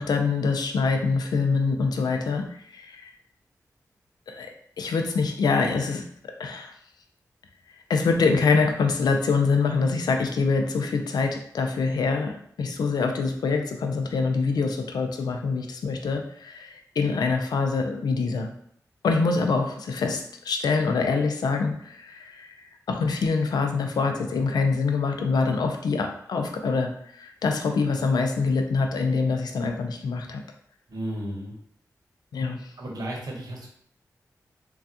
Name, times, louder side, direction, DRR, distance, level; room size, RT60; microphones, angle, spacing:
voice 1, 0.0-3.1 4.3-4.5 4.8-6.0 6.4-6.7 7.9-18.5 19.0-22.6 22.9-30.4 32.3-32.7, left 4 dB, 80° left, 4 dB, 0.4 m, -25 dB
voice 2, 30.9-31.6 32.8-33.7, right 1 dB, 70° right, -1 dB, 0.8 m, -33 dB
3.3 x 2.3 x 2.7 m, 0.67 s
cardioid pair, 40°, 7 cm